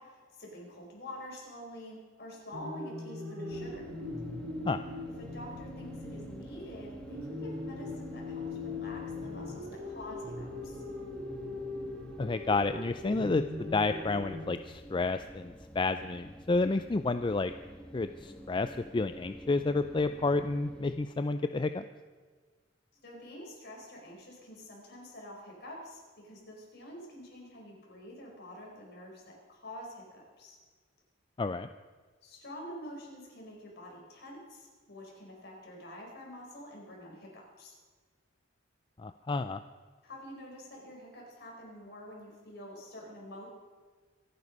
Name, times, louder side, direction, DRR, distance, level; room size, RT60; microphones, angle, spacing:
voice 1, 0.0-3.8 5.2-10.8 22.9-30.6 32.2-37.3 37.6-37.8 40.0-43.5, equal, 55° left, -1 dB, 5.0 m, -47 dB
sound 1, 2.5-14.5, left 2 dB, 85° right, 2.2 m, -40 dB
sound 2, 3.5-21.0, equal, 5° left, 1.3 m, -49 dB
voice 2, 12.2-17.5 17.9-21.8 31.4-31.7 39.0-39.6, left 3 dB, 25° left, 10 dB, 0.4 m, -30 dB
26.0 x 9.6 x 5.4 m, 1.4 s
head